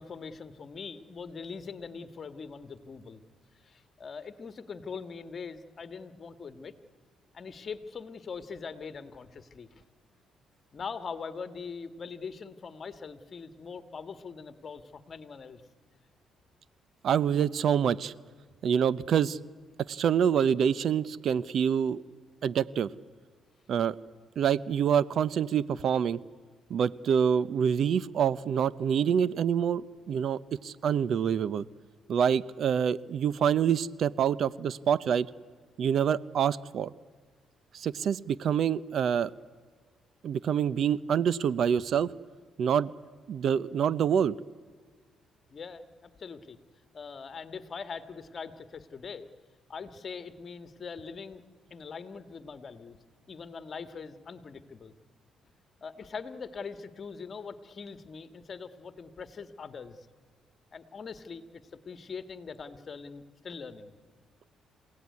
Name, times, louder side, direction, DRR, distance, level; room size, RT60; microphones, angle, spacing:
voice 1, 0.0-3.2 3.6-6.7 7.3-9.7 10.7-15.6 45.5-46.6 46.9-49.3 49.7-51.4 51.7-53.0 53.3-54.9 55.8-60.1 60.7-63.9, left 5 dB, 45° left, 11 dB, 1.8 m, -42 dB
voice 2, 17.0-18.1 18.6-19.4 19.9-22.0 22.4-22.9 23.7-23.9 24.4-26.2 26.7-31.6 32.1-35.3 35.8-36.9 37.7-39.3 40.2-42.1 42.6-42.9 43.3-44.3, right 8 dB, 65° right, 20 dB, 0.7 m, -26 dB
28.0 x 17.5 x 9.6 m, 1.5 s
cardioid pair, 90°, 0 cm